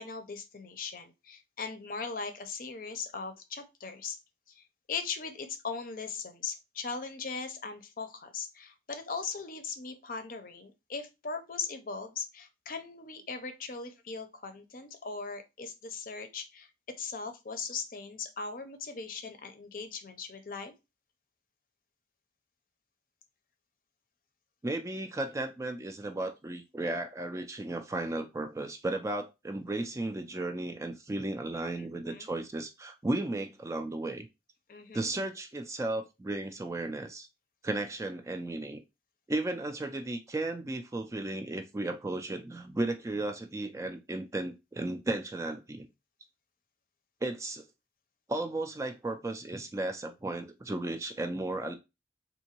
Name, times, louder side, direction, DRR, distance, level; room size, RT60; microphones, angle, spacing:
voice 1, 0.0-4.2 4.5-16.7 17.0-20.7 31.8-32.3 34.7-35.1, left 5 dB, 50° left, 8 dB, 0.5 m, -39 dB
voice 2, 24.6-34.3 34.9-37.3 37.6-38.8 39.3-45.9 47.2-47.6 48.3-51.7, right 2 dB, 15° right, 6 dB, 0.3 m, -34 dB
3.7 x 2.6 x 2.9 m, 0.24 s
head